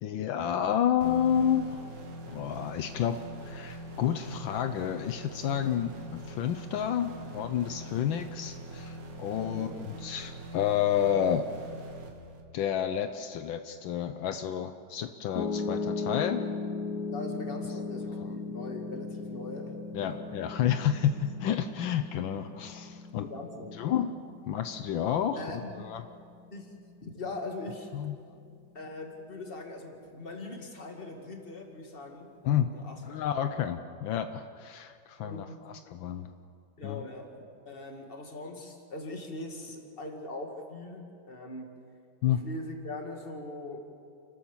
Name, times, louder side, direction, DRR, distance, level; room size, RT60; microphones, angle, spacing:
voice 1, 0.0-1.9 2.3-3.2 3.4-9.7 10.0-11.5 12.5-16.4 18.2-18.3 19.9-23.3 23.8-24.1 24.5-26.0 27.9-28.2 32.4-32.7 33.0-36.3 36.8-37.0 42.2-42.4, left 9 dB, 80° left, 8 dB, 1.5 m, -30 dB
sound 1, 1.0-12.7, right 1 dB, 65° right, 2.3 m, -43 dB
Piano, 15.4-27.5, left 4 dB, 60° left, 1.5 m, -37 dB
voice 2, 17.1-20.2 23.2-23.9 25.3-25.9 26.5-26.7 27.0-27.9 28.7-33.2 35.2-35.6 36.8-41.8 42.3-43.9, left 2 dB, 30° left, 2 dB, 2.3 m, -41 dB
29.5 x 13.0 x 7.3 m, 2.3 s
omnidirectional pair, 2.1 m